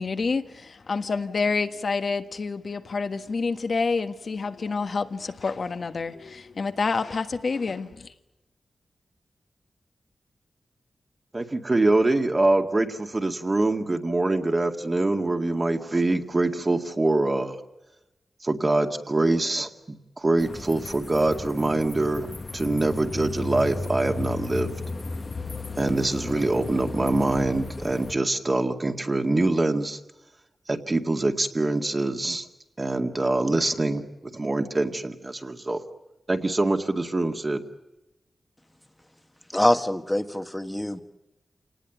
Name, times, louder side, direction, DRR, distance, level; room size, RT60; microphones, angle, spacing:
voice 1, 0.0-8.1, left 4 dB, 60° left, 1.4 m, -28 dB
voice 2, 11.3-17.6 18.4-24.7 25.8-30.0 30.7-32.5 32.8-34.0 34.3-35.8 36.3-37.6, right 2 dB, 30° right, 2.1 m, -24 dB
sound 1, 20.4-28.1, left 3 dB, 35° left, 1.3 m, -35 dB
voice 3, 39.5-41.0, left 1 dB, 10° left, 1.4 m, -24 dB
28.0 x 19.0 x 9.3 m
wide cardioid pair, 80°, 0 cm